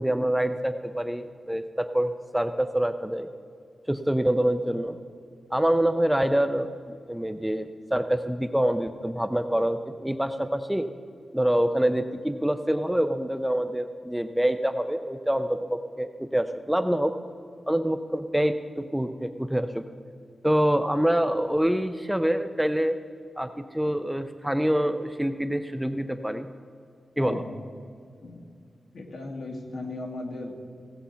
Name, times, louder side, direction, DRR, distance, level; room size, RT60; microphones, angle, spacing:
voice 1, 0.0-3.3 3.9-5.0 5.5-10.9 11.3-17.1 17.7-19.8 20.4-23.0 23.4-26.5 27.2-27.4, right 1 dB, 5° right, 8 dB, 0.4 m, -26 dB
voice 2, 27.2-27.6 28.2-28.5 28.9-30.5, left 2 dB, 60° left, 1 dB, 1.8 m, -36 dB
17.0 x 8.0 x 5.6 m, 2.3 s
wide cardioid pair, 160°, 0 cm